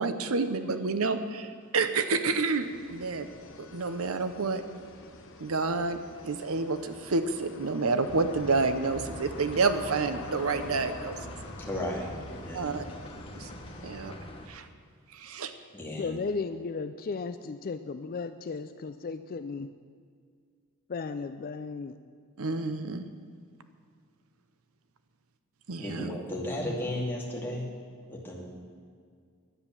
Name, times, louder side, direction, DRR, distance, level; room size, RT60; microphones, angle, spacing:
voice 1, 0.0-3.3 3.6-4.6 5.4-11.3 12.5-12.8 13.3-13.5 13.8-14.1 14.5-14.7 15.1-15.5 22.4-23.1 25.7-26.1, right 3 dB, 70° right, 10 dB, 0.8 m, -29 dB
sound 1, 2.6-14.1, left 3 dB, 60° left, 1.0 m, -48 dB
sound 2, 8.1-14.5, left 1 dB, 25° left, 1.1 m, -44 dB
voice 2, 11.6-12.7 15.7-16.1 25.8-27.7 28.1-28.4, left 1 dB, 10° left, -4 dB, 2.5 m, -34 dB
voice 3, 16.0-19.7 20.9-22.0, left 4 dB, 40° left, 10 dB, 0.4 m, -35 dB
11.0 x 9.9 x 7.1 m, 2.1 s
head